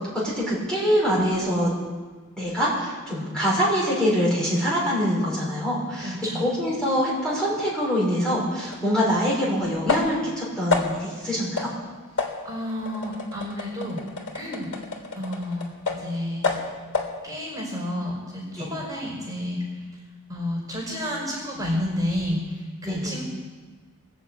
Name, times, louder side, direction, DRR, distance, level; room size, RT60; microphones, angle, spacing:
voice 1, 0.4-1.7 2.4-11.7 18.6-18.7 22.8-23.1, equal, 5° left, -7 dB, 5.3 m, -24 dB
voice 2, 6.0-6.4 12.4-14.0 14.3-14.7 15.1-16.5 17.2-19.6 20.3-23.2, left 1 dB, 15° right, -3 dB, 5.2 m, -30 dB
sound 1, 8.7-8.8 9.9-10.3 10.7-11.2 11.6-11.8 12.2-16.1 16.4-17.2, left 3 dB, 80° left, 3.3 m, -29 dB
22.0 x 7.3 x 8.5 m, 1.4 s
head